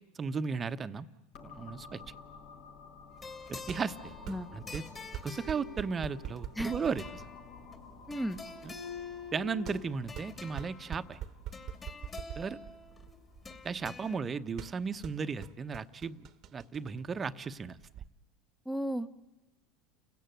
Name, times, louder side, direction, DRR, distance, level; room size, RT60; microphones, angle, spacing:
voice 1, 0.1-1.1 1.4-2.0 3.5-4.0 4.5-4.8 5.2-7.3 8.6-8.7 9.3-11.2 12.4-12.6 13.6-17.8, right 5 dB, 25° right, 11 dB, 1.1 m, -35 dB
sound 1, 1.3-14.9, left 5 dB, 65° left, 6.0 m, -53 dB
sound 2, 1.9-18.1, right 10 dB, 50° right, 1.2 m, -46 dB
sound 3, 3.1-14.2, left 4 dB, 25° left, 2.9 m, -47 dB
voice 2, 8.1-8.4 18.6-19.1, right 1 dB, 5° left, 14 dB, 1.1 m, -34 dB
30.0 x 16.5 x 9.3 m, 1.1 s
supercardioid pair, 105°, 0 cm